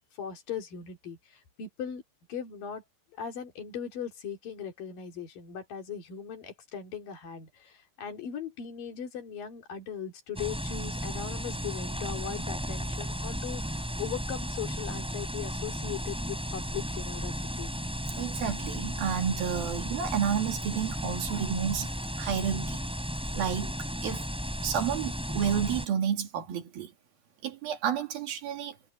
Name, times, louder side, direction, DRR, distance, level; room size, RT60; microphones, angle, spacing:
voice 1, 0.2-2.0 2.3-2.8 3.2-17.7, left 8 dB, 65° left, 4.5 m, -39 dB
sound 1, 10.4-25.9, equal, ahead, 6.0 m, -34 dB
voice 2, 18.2-21.9 22.2-22.8 23.3-23.7 24.0-24.3 24.6-26.9 27.4-28.9, right 8 dB, 75° right, 4.3 m, -30 dB
omnidirectional pair, 4.3 m